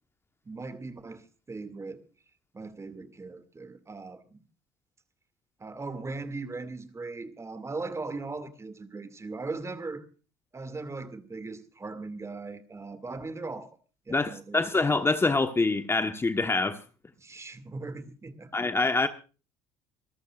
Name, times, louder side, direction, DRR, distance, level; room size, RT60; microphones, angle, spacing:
voice 1, 0.4-2.0 2.5-4.4 5.6-10.1 10.5-13.7 14.1-14.6 17.2-18.5, right 3 dB, 20° right, 2.4 m, -39 dB
voice 2, 14.1-16.8 18.5-19.1, left 3 dB, 20° left, 1.3 m, -25 dB
26.5 x 14.0 x 2.5 m
supercardioid pair, 80°, 13 cm